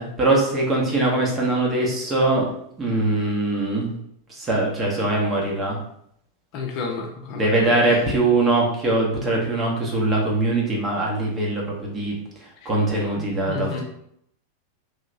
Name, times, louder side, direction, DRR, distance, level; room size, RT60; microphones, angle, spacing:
voice 1, 0.0-2.5 2.8-3.9 4.3-5.8 7.4-13.8, right 2 dB, 20° right, -2 dB, 0.9 m, -22 dB
voice 2, 6.5-8.0 12.6-12.7 13.2-13.8, left 4 dB, 40° left, 0 dB, 0.6 m, -32 dB
3.2 x 2.9 x 2.5 m, 0.73 s
figure-of-eight pair, 90°, 0 cm